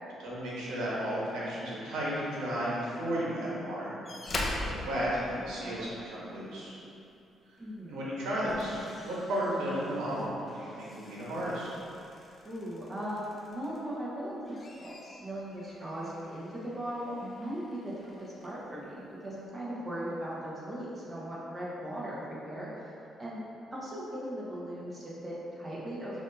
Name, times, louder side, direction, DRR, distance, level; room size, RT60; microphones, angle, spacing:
voice 1, 0.0-6.7 7.9-11.7, equal, 85° right, -7 dB, 1.1 m, -34 dB
sound 1, 4.0-6.1 7.6-7.8 8.2-14.0 14.4-18.6 19.4-19.5, left 2 dB, 35° left, 0.5 m, -43 dB
voice 2, 7.6-8.0 12.4-22.9 23.2-23.4 23.7-26.2, equal, 25° right, -7 dB, 1.2 m, -38 dB
6.0 x 2.7 x 2.7 m, 2.7 s
cardioid pair, 90°, 0 cm